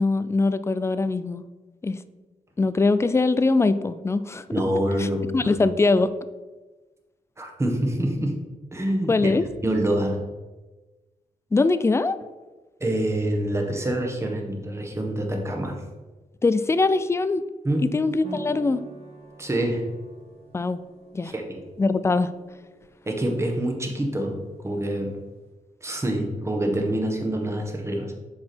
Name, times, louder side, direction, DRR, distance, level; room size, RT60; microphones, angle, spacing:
voice 1, 0.0-1.4 1.8-2.0 2.6-4.4 5.0-5.1 5.3-6.1 9.1-9.4 11.5-12.2 16.4-17.4 17.9-18.8 20.5-20.8 21.1-21.3 21.8-22.3, left 3 dB, 20° left, 14 dB, 0.4 m, -22 dB
voice 2, 4.5-5.5 7.4-8.4 8.7-9.3 9.6-10.2 12.8-15.8 17.6-18.0 19.4-20.0 21.2-21.6 23.1-25.2 25.8-28.1, right 1 dB, 20° right, 1 dB, 1.4 m, -26 dB
sound 1, 18.2-25.5, right 1 dB, 45° right, 1.9 m, -45 dB
7.3 x 4.9 x 4.4 m, 1.2 s
cardioid pair, 100°, 15 cm